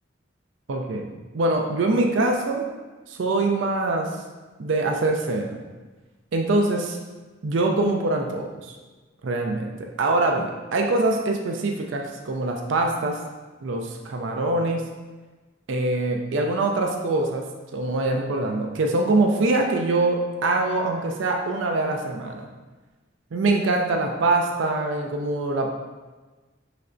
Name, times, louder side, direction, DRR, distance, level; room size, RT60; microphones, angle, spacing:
voice 1, 0.7-1.1 1.3-2.7 3.1-4.1 4.6-5.6 6.3-7.0 7.4-8.8 9.2-13.2 13.6-14.8 15.7-17.5 17.7-22.5 23.3-25.7, right 2 dB, 75° right, 2 dB, 0.4 m, -24 dB
5.7 x 3.2 x 2.5 m, 1.3 s
head